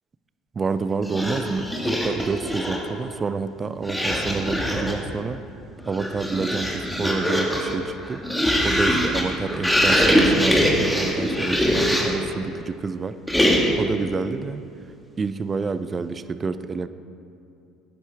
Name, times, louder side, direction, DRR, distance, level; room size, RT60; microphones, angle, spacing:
voice 1, 0.5-5.4 5.9-8.2 8.6-13.2 13.8-14.6 15.2-16.9, right 4 dB, 30° right, 13 dB, 0.5 m, -28 dB
sound 1, 1.0-2.9 3.8-5.1 5.8-12.3 13.3-13.9, equal, 5° left, 1.7 m, -22 dB
12.0 x 9.7 x 3.5 m, 2.6 s
hypercardioid pair, 70°, 0 cm